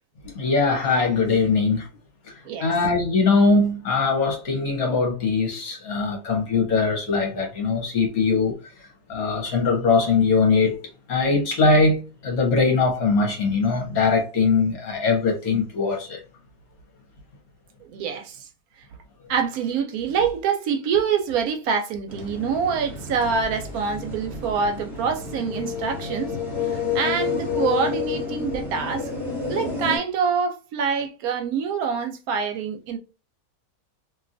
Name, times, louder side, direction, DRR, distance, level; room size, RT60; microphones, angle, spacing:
voice 1, 0.3-1.9 2.6-8.6 9.1-10.8 11.1-16.2, left 4 dB, 65° left, 1.4 m, -21 dB
voice 2, 17.9-18.4 19.3-26.3 26.9-29.1 29.5-33.0, right 6 dB, 75° right, 1.0 m, -25 dB
sound 1, 22.1-30.0, left 5 dB, 25° right, 1.0 m, -30 dB
3.1 x 2.6 x 2.5 m
omnidirectional pair, 1.7 m